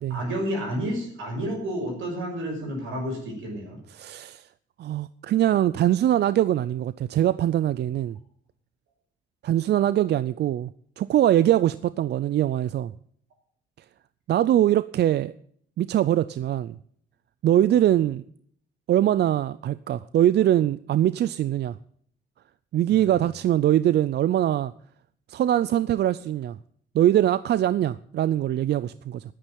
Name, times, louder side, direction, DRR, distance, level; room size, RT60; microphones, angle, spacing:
voice 1, 0.1-3.8 22.9-23.1, equal, 85° right, 6.2 m, -30 dB
voice 2, 3.9-4.4 4.8-8.2 9.4-10.7 11.0-12.9 14.3-15.3 15.8-16.8 17.4-18.2 18.9-21.8 22.7-24.7 25.3-26.6 26.9-29.2, right 12 dB, 60° right, 0.5 m, -22 dB
10.0 x 8.8 x 9.3 m
cardioid pair, 90°, 20 cm